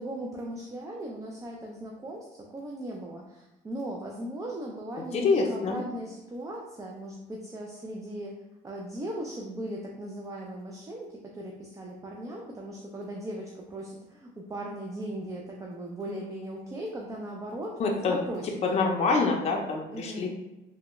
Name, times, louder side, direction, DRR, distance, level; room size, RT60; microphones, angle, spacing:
voice 1, 0.0-8.3 8.6-18.8 19.9-20.3, right 1 dB, 20° right, -1 dB, 0.4 m, -38 dB
voice 2, 5.1-5.8 17.8-18.2 18.6-20.3, left 4 dB, 40° left, 0 dB, 0.5 m, -26 dB
3.3 x 2.1 x 2.9 m, 1.0 s
cardioid pair, 110°, 17 cm